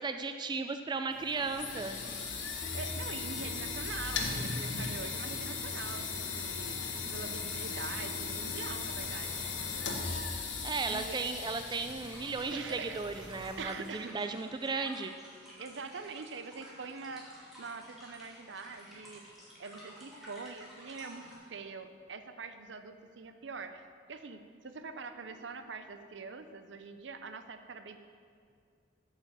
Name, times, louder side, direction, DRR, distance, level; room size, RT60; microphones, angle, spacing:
voice 1, 0.0-2.0 10.6-15.1, right 4 dB, 25° right, 7 dB, 0.4 m, -35 dB
sound 1, 1.1-13.9, left 4 dB, 85° left, 1.4 m, -38 dB
sound 2, 2.6-9.2, right 1 dB, 55° left, 0.5 m, -51 dB
voice 2, 2.7-6.8 7.1-9.9 10.9-11.2 12.5-14.2 15.6-19.2 19.6-28.0, right 4 dB, 75° right, 9 dB, 0.7 m, -44 dB
sound 3, 12.0-21.3, equal, ahead, 2.8 m, -53 dB
8.8 x 6.6 x 7.5 m, 2.2 s
head